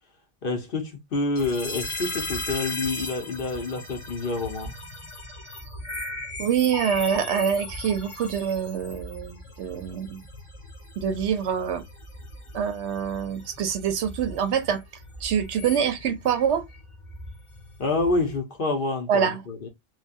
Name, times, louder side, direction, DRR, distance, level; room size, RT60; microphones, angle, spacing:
voice 1, 0.4-4.7 17.8-19.7, left 3 dB, 50° left, 1.0 m, -28 dB
sound 1, 1.4-18.4, left 2 dB, 30° left, 0.9 m, -38 dB
voice 2, 6.4-10.3 11.0-11.8 12.5-14.8 15.2-16.6 19.1-19.4, right 8 dB, 70° right, 0.9 m, -25 dB
3.2 x 2.2 x 2.5 m
omnidirectional pair, 1.3 m